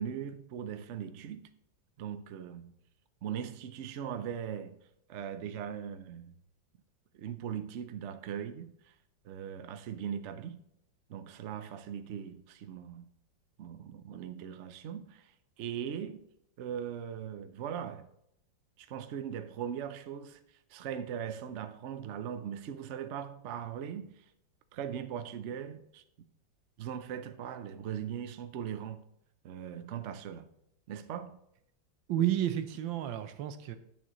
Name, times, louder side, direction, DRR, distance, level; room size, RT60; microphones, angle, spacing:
voice 1, 0.0-1.5 2.0-2.7 3.2-4.8 5.1-6.3 7.1-8.9 9.2-10.6 11.1-13.1 13.6-15.3 15.6-16.2 16.6-18.1 18.8-20.4 20.7-24.1 24.7-26.0 26.8-29.0 29.4-30.5 30.9-31.4, right 8 dB, 65° right, 0.7 m, -39 dB
voice 2, 32.1-33.7, right 11 dB, 85° right, 1.5 m, -31 dB
11.0 x 7.1 x 3.0 m
omnidirectional pair, 2.0 m